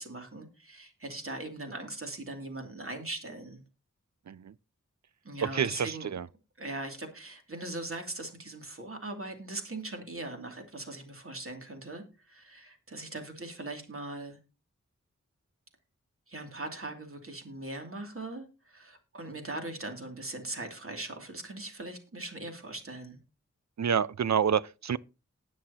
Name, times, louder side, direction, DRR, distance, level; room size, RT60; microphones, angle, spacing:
voice 1, 0.0-3.6 5.2-6.1 6.6-14.4 16.3-23.2, right 2 dB, 50° right, 2.7 m, -40 dB
voice 2, 5.5-6.3 23.8-25.0, right 7 dB, 65° right, 0.5 m, -28 dB
19.0 x 6.4 x 2.9 m
wide cardioid pair, 80°, 29 cm